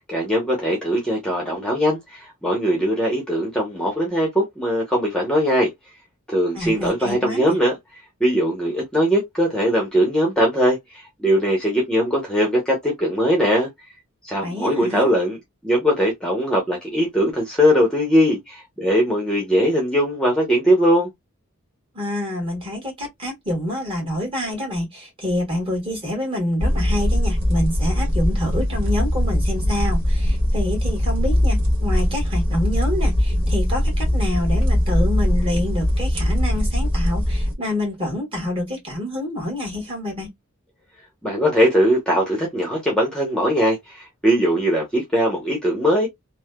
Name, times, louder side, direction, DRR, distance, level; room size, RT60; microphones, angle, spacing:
voice 1, 0.1-5.7 6.3-7.8 8.2-13.7 14.2-15.4 15.6-21.1 41.2-46.1, equal, 5° left, 0.8 m, -20 dB
voice 2, 6.5-7.6 14.4-15.1 21.9-40.3, left 1 dB, 25° right, 1.5 m, -27 dB
sound 1, 26.6-37.5, left 1 dB, 60° right, 1.5 m, -21 dB
3.1 x 2.1 x 2.2 m
head